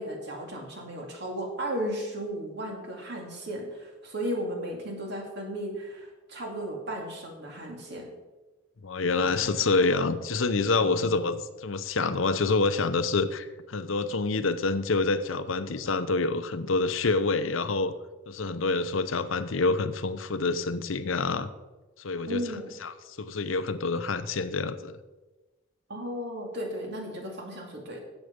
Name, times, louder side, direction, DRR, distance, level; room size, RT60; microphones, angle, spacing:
voice 1, 0.0-8.1 9.2-9.5 10.8-11.1 22.3-22.7 25.9-28.0, equal, 55° right, 1 dB, 2.4 m, -35 dB
voice 2, 8.8-17.9 18.3-21.5 22.0-22.4 22.8-25.0, left 3 dB, 80° left, 12 dB, 0.7 m, -27 dB
12.5 x 8.2 x 5.2 m, 1.2 s
head